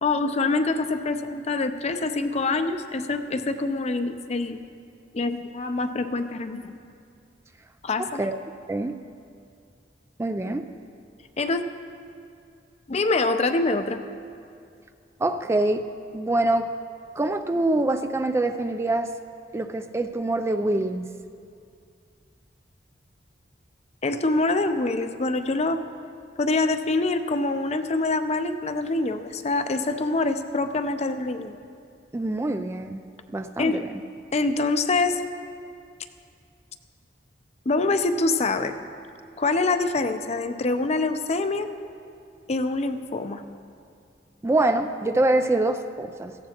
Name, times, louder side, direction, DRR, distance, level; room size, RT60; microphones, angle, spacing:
voice 1, 0.0-4.6 5.1-6.8 7.8-8.2 11.4-11.7 12.9-14.0 24.0-25.8 26.4-31.5 33.6-33.8 34.3-35.2 37.7-38.7 39.4-41.7 42.5-43.4, left 3 dB, 35° left, 9 dB, 0.6 m, -25 dB
voice 2, 8.0-8.4 8.7-9.0 10.2-10.6 15.2-15.8 16.1-16.7 17.2-19.1 19.5-21.1 32.1-34.0 44.4-46.4, right 2 dB, 15° right, 8 dB, 0.3 m, -25 dB
17.0 x 14.5 x 2.9 m, 2.4 s
head